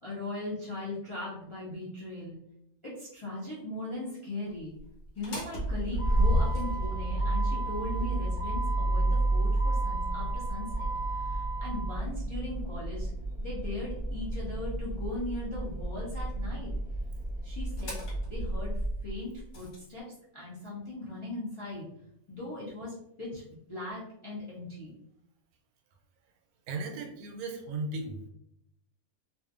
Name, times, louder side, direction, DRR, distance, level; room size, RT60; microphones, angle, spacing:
voice 1, 0.0-2.4 2.8-4.7 5.2-13.1 13.4-16.7 17.4-18.0 18.3-20.1 20.3-21.8 22.3-25.0, left 2 dB, 40° left, -7 dB, 0.4 m, -39 dB
Motor vehicle (road), 5.1-19.8, right 1 dB, 75° left, 1.3 m, -30 dB
voice 2, 26.7-28.2, right 2 dB, 80° right, 3 dB, 1.1 m, -36 dB
2.5 x 2.4 x 2.4 m, 0.76 s
omnidirectional pair, 1.5 m